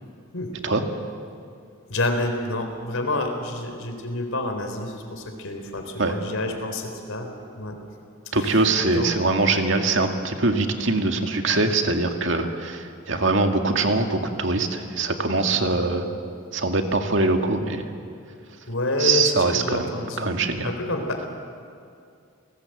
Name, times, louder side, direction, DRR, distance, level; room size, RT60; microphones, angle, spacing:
voice 1, 1.9-7.3 7.6-7.8 8.4-8.6 8.9-9.1 15.6-15.9 18.7-21.3, left 2 dB, 80° left, 5 dB, 4.1 m, -28 dB
voice 2, 8.3-16.1 16.5-17.9 19.0-19.9 20.2-20.7, right 3 dB, 60° right, 4 dB, 2.1 m, -23 dB
30.0 x 20.0 x 7.9 m, 2.3 s
head